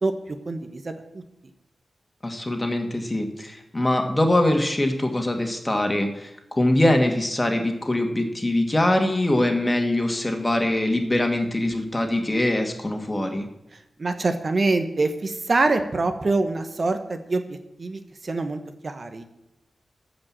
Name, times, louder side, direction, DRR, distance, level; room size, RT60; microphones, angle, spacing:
voice 1, 0.5-0.9 14.0-17.4 17.8-18.6 18.8-19.2, right 3 dB, 55° right, 7 dB, 1.2 m, -24 dB
voice 2, 2.2-13.5, left 1 dB, 25° left, 4 dB, 2.1 m, -23 dB
13.5 x 5.3 x 7.6 m, 0.87 s
cardioid pair, 50°, 0 cm